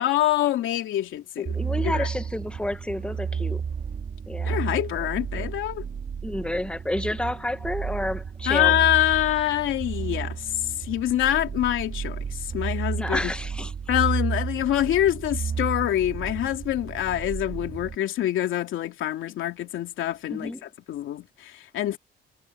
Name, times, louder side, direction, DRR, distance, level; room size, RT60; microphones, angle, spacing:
voice 1, 0.0-1.6 1.8-2.1 4.4-5.8 8.5-10.5 10.8-13.3 13.9-22.0, left 13 dB, 80° left, 2.9 m, -25 dB
voice 2, 1.4-3.6 4.3-4.6 5.3-5.5 6.2-8.8 13.0-13.7 20.3-20.6, left 1 dB, 5° left, 1.5 m, -30 dB
sound 1, 1.5-18.0, right 6 dB, 45° right, 3.8 m, -32 dB
cardioid pair, 90°, 20 cm